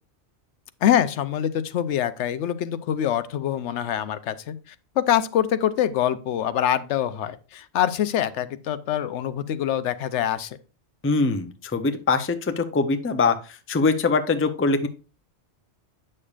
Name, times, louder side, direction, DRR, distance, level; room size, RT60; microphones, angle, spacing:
voice 1, 0.8-10.6, left 10 dB, 85° left, 13 dB, 0.9 m, -25 dB
voice 2, 11.0-13.4 13.7-14.9, left 4 dB, 20° left, 8 dB, 0.4 m, -22 dB
8.6 x 6.6 x 2.4 m, 0.33 s
omnidirectional pair, 1.2 m